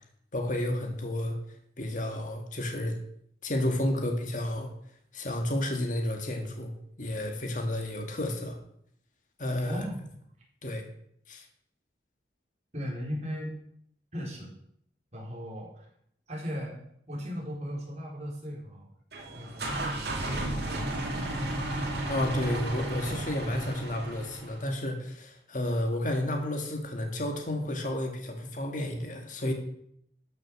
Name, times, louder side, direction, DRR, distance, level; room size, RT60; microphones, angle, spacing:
voice 1, 0.3-1.4 1.8-3.0 3.4-4.7 5.1-8.6 9.4-9.9 10.6-10.8 11.3-11.4 22.1-29.5, left 1 dB, 45° left, 3 dB, 1.8 m, -31 dB
voice 2, 9.6-10.0 12.7-13.5 14.1-14.5 15.1-15.9 16.3-16.8 17.1-18.9 19.3-21.6, equal, 40° right, -3 dB, 4.0 m, -37 dB
sound 1, 19.1-24.7, right 1 dB, 65° right, 2.4 m, -33 dB
12.5 x 6.5 x 6.4 m, 0.69 s
head